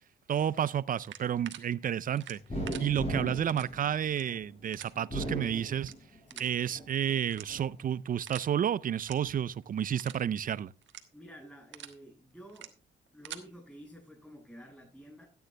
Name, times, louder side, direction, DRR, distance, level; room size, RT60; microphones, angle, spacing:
voice 1, 0.3-2.4 2.8-5.9 6.4-10.7, right 9 dB, 45° right, 0.5 m, -31 dB
sound 1, 1.0-1.6 2.2-2.8 3.5-3.7 4.1-4.2 4.7-4.9 5.8-5.9 6.3-6.5 7.3-7.7 8.2-8.5 9.0-9.1 9.5-9.6 10.0-10.2 10.8-11.0 11.5-11.9 12.5-12.7 13.1-13.4, right 10 dB, 70° right, 1.3 m, -45 dB
sound 2, 2.5-4.4 5.0-6.3 6.7-7.6, equal, 30° left, 5.6 m, -37 dB
voice 2, 11.1-12.7 13.1-15.3, equal, 5° left, 7.7 m, -51 dB
13.5 x 9.4 x 3.3 m
cardioid pair, 90°, 20 cm